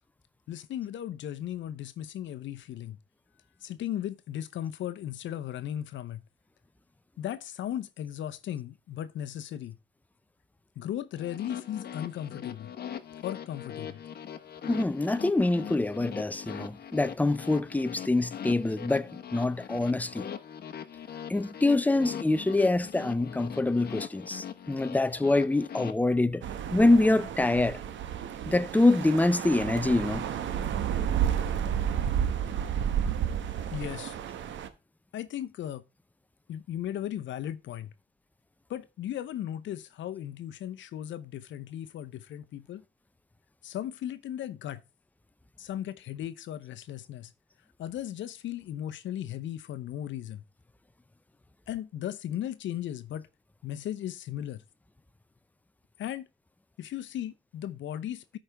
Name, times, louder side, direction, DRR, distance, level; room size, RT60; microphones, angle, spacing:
voice 1, 0.5-3.0 3.6-6.2 7.2-9.8 10.8-12.7 13.2-14.0 33.7-34.2 35.1-35.8 36.5-37.9 38.7-42.8 43.6-44.8 45.6-47.3 47.8-50.4 51.7-53.3 53.6-54.6 56.0-56.3 56.8-58.4, left 11 dB, 70° left, 0.8 m, -36 dB
sound 1, 11.2-25.9, left 8 dB, 50° left, 1.1 m, -41 dB
voice 2, 14.6-20.3 21.3-26.4 26.7-27.8 28.5-30.3, left 2 dB, 10° left, 0.5 m, -25 dB
sound 2, 26.4-34.7, right 9 dB, 70° right, 1.1 m, -31 dB
13.0 x 5.1 x 3.5 m
cardioid pair, 90°, 20 cm